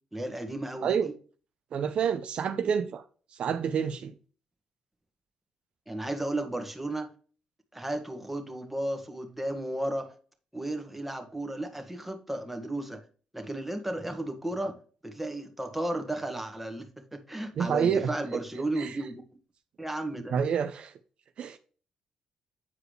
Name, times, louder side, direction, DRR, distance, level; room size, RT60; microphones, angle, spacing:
voice 1, 0.1-1.1 5.9-7.1 7.7-10.1 10.5-13.0 13.3-14.8 15.0-19.2 19.8-20.4, right 1 dB, 5° right, 1.5 m, -34 dB
voice 2, 1.7-3.0 3.3-4.2 17.6-18.1 18.8-19.0 20.3-20.9 21.4-21.6, right 7 dB, 60° right, 0.6 m, -28 dB
8.3 x 4.8 x 3.2 m
cardioid pair, 80°, 2 cm